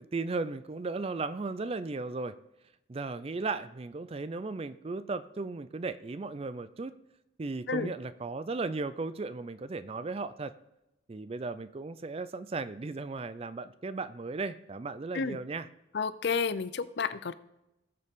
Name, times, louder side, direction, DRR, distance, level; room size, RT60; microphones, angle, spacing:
voice 1, 0.0-2.4 2.9-6.9 7.4-10.5 11.1-15.7, right 3 dB, 30° right, 14 dB, 0.4 m, -36 dB
voice 2, 15.9-17.3, left 5 dB, 55° left, 15 dB, 0.5 m, -31 dB
19.0 x 6.7 x 3.6 m, 0.91 s
head